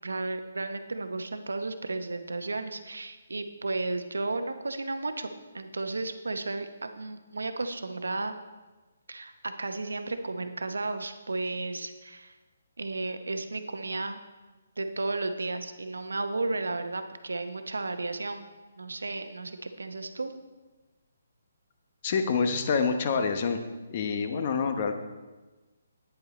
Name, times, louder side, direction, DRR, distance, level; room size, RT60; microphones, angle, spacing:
voice 1, 0.0-8.3 9.1-12.4 12.8-14.2 14.8-18.4 18.8-20.3, right 3 dB, 85° right, 8 dB, 0.8 m, -33 dB
voice 2, 22.0-23.6 23.9-24.9, left 5 dB, 40° left, 7 dB, 1.0 m, -27 dB
9.3 x 8.0 x 4.0 m, 1.2 s
figure-of-eight pair, 145°, 0 cm